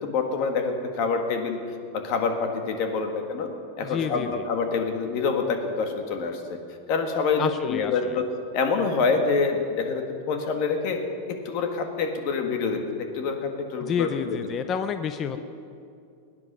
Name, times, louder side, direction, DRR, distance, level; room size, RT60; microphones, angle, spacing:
voice 1, 0.0-1.6 1.9-3.5 3.8-6.6 6.9-8.2 8.5-11.0 11.4-14.4, left 4 dB, 40° left, 4 dB, 1.7 m, -26 dB
voice 2, 3.8-4.4 7.4-8.2 13.8-15.4, left 7 dB, 20° left, 9 dB, 0.5 m, -29 dB
22.0 x 9.6 x 6.1 m, 2.5 s
supercardioid pair, 170°, 0 cm